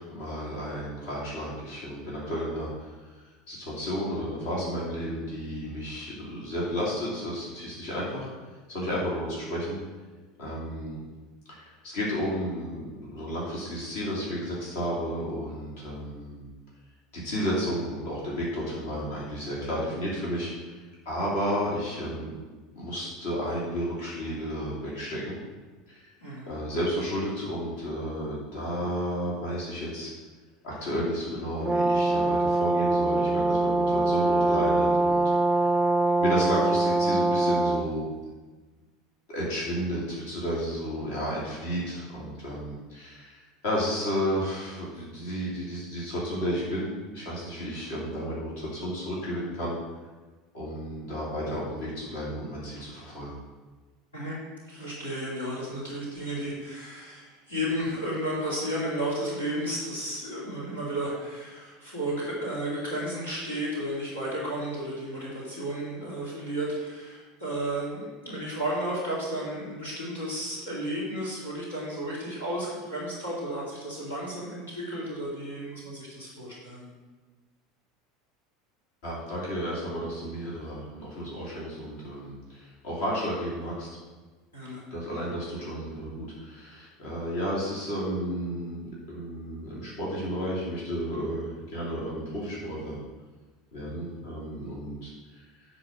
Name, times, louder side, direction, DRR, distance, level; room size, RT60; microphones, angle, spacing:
voice 1, 0.0-3.2 3.5-8.3 8.7-9.8 10.4-11.0 11.5-16.4 17.1-22.3 22.7-25.4 25.9-26.1 26.5-30.1 30.6-35.2 35.6-35.7 36.2-38.0 39.3-49.8 50.5-53.3 79.0-84.0 84.9-93.0 93.7-95.4, equal, 65° left, -6 dB, 2.6 m, -32 dB
Brass instrument, 31.6-37.9, right 2 dB, 10° right, 0.5 m, -23 dB
voice 2, 54.7-76.9 84.5-84.8, right 1 dB, 85° left, -6 dB, 2.7 m, -33 dB
9.9 x 4.1 x 6.3 m, 1.3 s
figure-of-eight pair, 75°, 0 cm